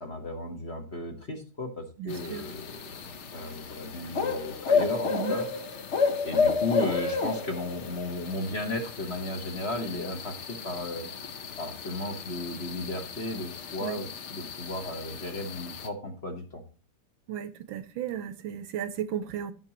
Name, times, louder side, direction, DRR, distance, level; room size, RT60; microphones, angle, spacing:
voice 1, 0.0-5.5 6.2-11.1 11.6-16.6, left 1 dB, 35° left, 1.3 m, -35 dB
voice 2, 2.0-2.4 5.1-5.4 13.8-14.0 17.3-19.5, right 9 dB, 75° right, 1.3 m, -34 dB
sound 1, 2.1-15.9, left 5 dB, 60° left, 0.7 m, -32 dB
15.0 x 6.0 x 2.9 m
omnidirectional pair, 2.3 m